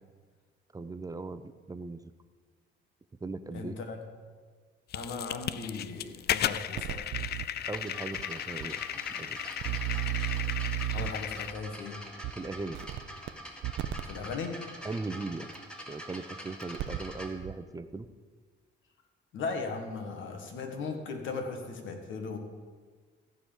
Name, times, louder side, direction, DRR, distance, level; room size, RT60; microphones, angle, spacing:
voice 1, 0.7-2.1 3.2-3.8 7.7-8.8 9.1-9.4 12.4-12.8 14.8-15.5 15.9-18.1, right 3 dB, 20° right, 11 dB, 0.6 m, -38 dB
voice 2, 3.5-4.0 4.9-7.0 10.9-11.9 14.0-14.6 19.3-22.4, left 4 dB, 75° left, 5 dB, 1.7 m, -37 dB
sound 1, 4.9-11.5, left 11 dB, 55° left, 0.4 m, -35 dB
sound 2, 6.8-7.5 8.2-8.3 8.6-8.7 9.6-11.3 12.2-12.3 12.7-13.3 13.6-14.0 15.5-15.6 16.6-17.1 17.4-17.5, right 14 dB, 75° right, 0.6 m, -33 dB
sound 3, 7.7-17.3, equal, 5° left, 1.9 m, -45 dB
14.5 x 4.9 x 7.3 m, 1.6 s
cardioid pair, 90°, 20 cm